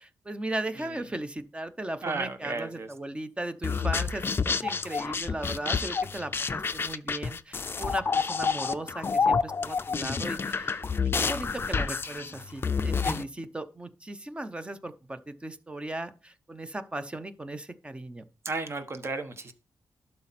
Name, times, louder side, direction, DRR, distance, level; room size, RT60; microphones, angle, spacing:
voice 1, 0.0-10.8 11.2-18.2, right 1 dB, 15° right, 0.7 m, -37 dB
voice 2, 2.0-2.9 18.4-19.5, right 3 dB, 40° right, 1.2 m, -33 dB
sound 1, 3.6-13.2, left 5 dB, 35° left, 0.5 m, -29 dB
11.5 x 4.3 x 4.1 m
wide cardioid pair, 130°, 7 cm